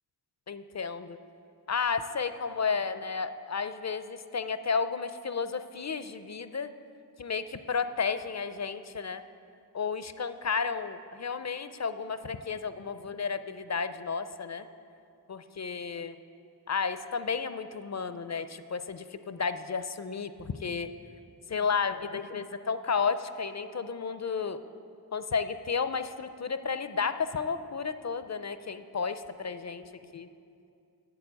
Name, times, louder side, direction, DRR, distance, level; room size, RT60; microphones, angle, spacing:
voice 1, 0.5-1.2 1.7-6.7 7.2-9.2 9.7-14.7 15.3-16.2 16.7-20.9 21.5-24.6 25.1-29.8 30.1-30.3, left 5 dB, 45° left, 11 dB, 0.4 m, -32 dB
8.1 x 6.9 x 8.0 m, 2.6 s
wide cardioid pair, 40°, 40 cm